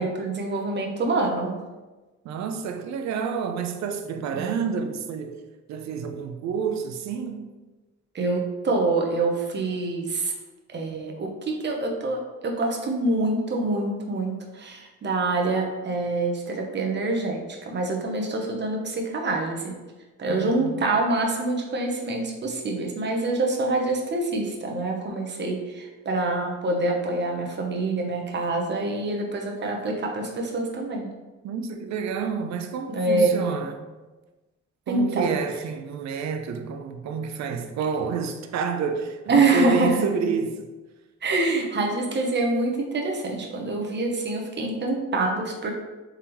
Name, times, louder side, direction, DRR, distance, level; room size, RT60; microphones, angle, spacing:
voice 1, 0.0-1.5 4.3-4.6 8.1-10.3 10.7-19.7 20.2-31.1 32.9-33.3 34.9-35.3 39.3-40.0 41.2-45.7, right 2 dB, 35° right, 0.8 m, -26 dB
voice 2, 2.2-5.4 5.7-7.5 20.3-20.9 31.4-33.8 34.9-40.7, right 6 dB, 65° right, 0.5 m, -29 dB
3.5 x 3.5 x 3.0 m
cardioid pair, 90°, 30 cm